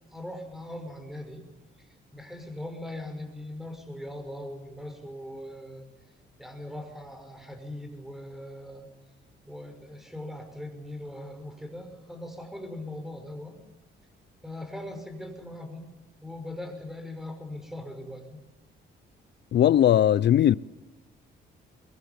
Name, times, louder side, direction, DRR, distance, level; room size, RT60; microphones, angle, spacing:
voice 1, 0.1-1.4 2.1-5.9 6.4-8.9 9.5-13.6 14.4-15.9 16.2-18.4, left 1 dB, ahead, 5.8 m, -40 dB
voice 2, 19.5-20.6, left 11 dB, 60° left, 0.7 m, -19 dB
24.0 x 22.5 x 7.2 m
cardioid pair, 90°, 20 cm